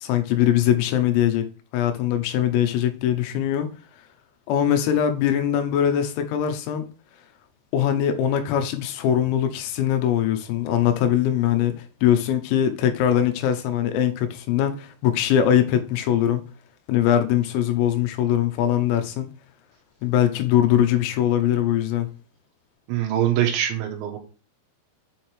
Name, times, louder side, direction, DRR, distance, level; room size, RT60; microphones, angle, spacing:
voice 1, 0.0-1.5 1.7-3.7 4.5-6.8 7.7-16.5 16.9-19.3 20.0-22.1, left 10 dB, 85° left, 3.7 m, -21 dB
voice 2, 22.9-24.2, right 11 dB, 75° right, 3.3 m, -23 dB
8.3 x 3.4 x 4.4 m
omnidirectional pair, 6.0 m